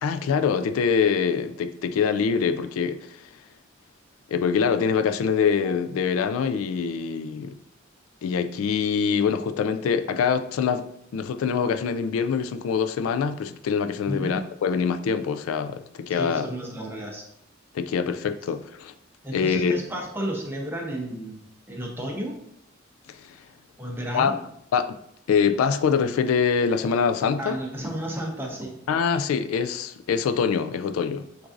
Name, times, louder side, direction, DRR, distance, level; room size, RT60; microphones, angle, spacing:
voice 1, 0.0-3.2 4.3-7.5 8.2-10.8 11.1-16.5 17.7-18.9 19.3-19.8 23.1-23.3 24.1-24.3 24.7-25.0 25.3-27.6 28.9-31.3, left 6 dB, 80° left, 0.3 m, -24 dB
voice 2, 14.1-14.4 16.1-17.2 19.2-21.4 21.7-22.4 23.8-24.3 27.4-28.8, right 1 dB, 10° right, 0.8 m, -32 dB
7.4 x 2.6 x 2.5 m
head